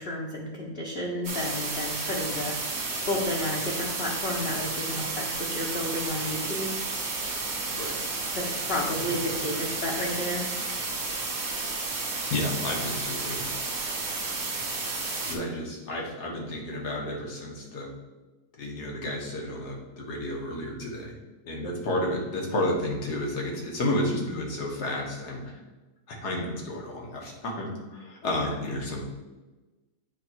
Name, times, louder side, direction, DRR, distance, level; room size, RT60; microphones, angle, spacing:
voice 1, 0.0-2.6 3.0-6.7 8.3-10.5 28.4-28.5, left 1 dB, 45° left, -4 dB, 1.0 m, -32 dB
sound 1, 1.2-15.3, right 3 dB, 45° right, 1.2 m, -32 dB
voice 2, 12.3-13.5 15.2-17.9 18.6-21.1 21.4-25.6 26.1-29.0, left 1 dB, 80° left, -1 dB, 1.9 m, -31 dB
8.8 x 3.2 x 4.5 m, 1.2 s
omnidirectional pair, 1.7 m